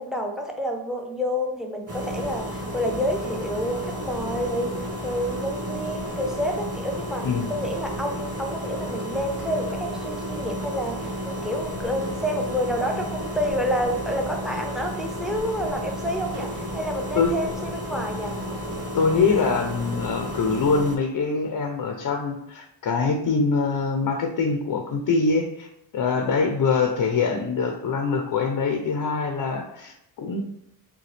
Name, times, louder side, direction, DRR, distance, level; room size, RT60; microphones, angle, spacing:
voice 1, 0.0-18.3 26.1-26.4, equal, ahead, 2 dB, 0.6 m, -29 dB
sound 1, 1.9-21.0, equal, 30° right, 1.3 m, -32 dB
voice 2, 18.9-25.7 25.9-30.4, left 4 dB, 45° left, 3 dB, 0.6 m, -24 dB
6.7 x 2.3 x 3.2 m, 0.78 s
cardioid pair, 130°, 48 cm